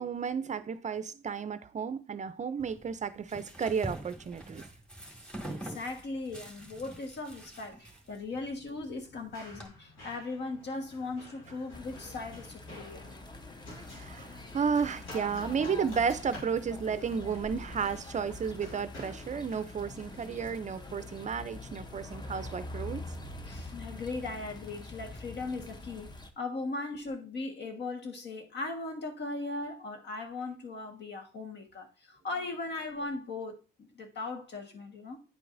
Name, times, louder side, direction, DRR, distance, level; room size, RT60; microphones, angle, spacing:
voice 1, 0.0-4.6 13.9-23.0, right 6 dB, 40° right, 0.5 m, -33 dB
sound 1, 2.6-9.7, right 1 dB, 5° left, 1.9 m, -45 dB
voice 2, 5.1-13.0 23.4-35.2, left 3 dB, 60° left, 1.4 m, -38 dB
Run, 8.3-25.6, left 1 dB, 85° left, 2.8 m, -52 dB
sound 2, 11.7-26.3, left 2 dB, 20° left, 0.8 m, -45 dB
9.4 x 4.6 x 2.6 m
cardioid pair, 90°, 20 cm